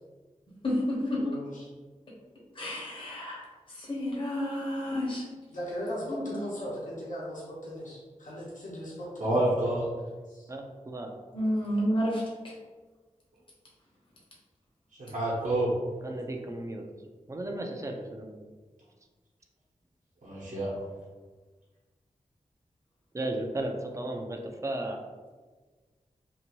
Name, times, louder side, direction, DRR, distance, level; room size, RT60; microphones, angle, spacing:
voice 1, 0.6-1.2 2.6-3.4 3.9-5.2 6.1-6.2 11.3-12.2, equal, 40° left, -6 dB, 1.0 m, -30 dB
voice 2, 1.2-1.7 5.5-9.5 10.3-10.4, equal, 80° left, -7 dB, 0.9 m, -38 dB
voice 3, 9.2-9.8 15.0-15.7 20.2-20.7, right 1 dB, 75° right, -9 dB, 0.9 m, -28 dB
voice 4, 10.5-11.1 16.0-16.8 17.3-18.4 23.1-25.0, right 1 dB, 25° right, 2 dB, 0.4 m, -35 dB
2.7 x 2.6 x 2.9 m, 1.4 s
wide cardioid pair, 75°, 13 cm